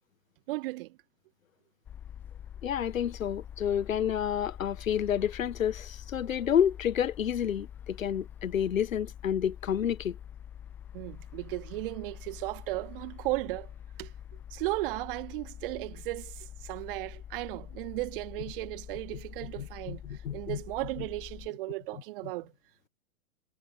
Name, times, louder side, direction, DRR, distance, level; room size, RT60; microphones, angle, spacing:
voice 1, 0.5-1.0 10.9-13.7 14.0-22.5, right 20 dB, 40° right, 1.3 m, -36 dB
sound 1, 1.8-21.5, left 9 dB, 5° left, 0.4 m, -45 dB
voice 2, 2.6-10.2 19.6-20.6, left 9 dB, 65° left, 1.0 m, -29 dB
figure-of-eight pair, 105°, 43 cm